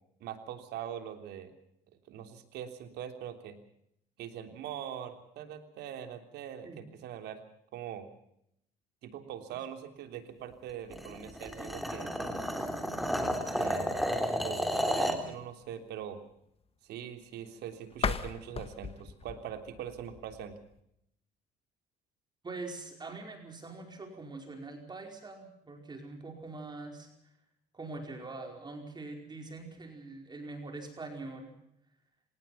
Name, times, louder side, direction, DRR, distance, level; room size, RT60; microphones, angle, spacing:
voice 1, 0.2-1.5 2.1-3.6 4.2-7.4 7.7-8.1 9.0-12.1 13.5-14.0 14.4-16.2 16.8-20.6, right 9 dB, 80° right, 7 dB, 3.3 m, -42 dB
sound 1, 10.9-15.3, equal, ahead, 3.4 m, -32 dB
sound 2, 17.9-20.8, left 6 dB, 35° left, 1.7 m, -37 dB
voice 2, 22.4-27.1 27.7-31.5, right 3 dB, 25° right, 3 dB, 4.9 m, -43 dB
27.0 x 18.0 x 5.8 m, 0.75 s
cardioid pair, 110°, 17 cm